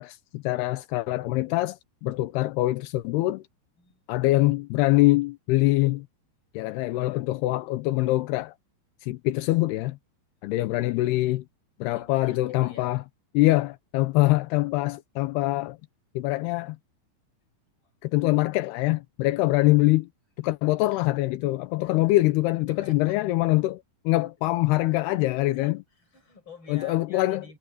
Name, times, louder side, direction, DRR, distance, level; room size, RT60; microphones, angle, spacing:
voice 1, 0.0-3.4 4.1-6.1 6.5-8.5 9.0-10.0 10.4-11.4 11.8-13.0 13.3-15.8 16.2-16.8 18.0-20.1 20.4-23.8 24.1-25.8 26.7-27.4, left 18 dB, 80° left, 2.3 m, -24 dB
voice 2, 11.9-13.0 18.0-18.1 21.8-22.0 22.7-23.2 25.2-27.6, left 3 dB, 25° left, 7.5 m, -49 dB
omnidirectional pair, 5.5 m